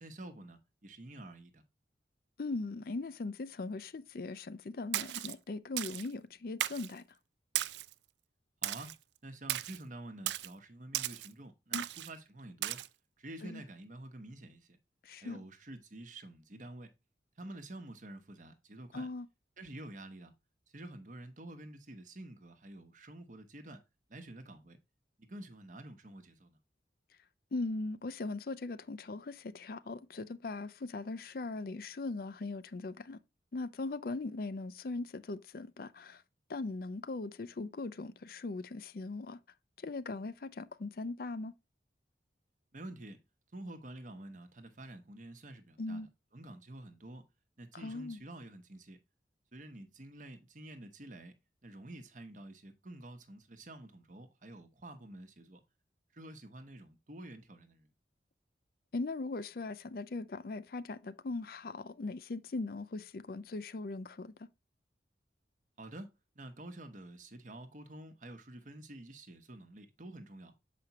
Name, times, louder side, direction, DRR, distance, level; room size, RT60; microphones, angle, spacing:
voice 1, 0.0-1.6 8.6-8.9 9.2-12.8 13.2-14.8 15.2-16.9 17.4-19.1 19.6-20.3 20.7-23.8 24.1-24.8 25.2-26.6 42.7-43.2 43.5-47.3 47.6-49.0 49.5-51.3 51.6-55.6 56.1-57.9 65.8-66.1 66.3-70.5, right 1 dB, 45° right, 1.0 m, -49 dB
voice 2, 2.4-7.0 11.7-11.9 13.4-13.6 15.0-15.4 18.9-19.3 27.5-33.2 33.5-36.2 36.5-39.4 39.8-41.5 45.8-46.1 47.8-48.2 58.9-64.5, left 3 dB, 55° left, 0.5 m, -39 dB
Splash splatter, 4.9-5.3 5.8-6.1 6.6-6.9 7.6-7.9 8.6-9.0 9.5-9.8 10.3-10.5 10.9-11.3 11.7-12.1 12.6-12.9, right 14 dB, 75° right, 0.3 m, -36 dB
7.0 x 5.0 x 2.9 m
head